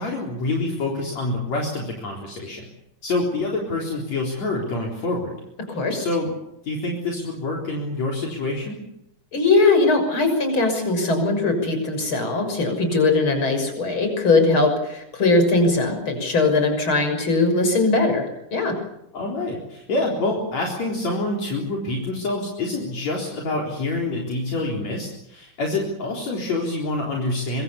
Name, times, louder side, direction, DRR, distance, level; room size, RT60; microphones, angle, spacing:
voice 1, 0.0-2.7 3.0-5.4 6.0-6.3 6.6-8.8 19.1-27.6, left 2 dB, 55° left, -1 dB, 5.1 m, -26 dB
voice 2, 5.7-6.1 9.3-18.8, left 3 dB, 35° left, 6 dB, 7.0 m, -20 dB
25.0 x 24.5 x 7.1 m, 0.82 s
omnidirectional pair, 3.7 m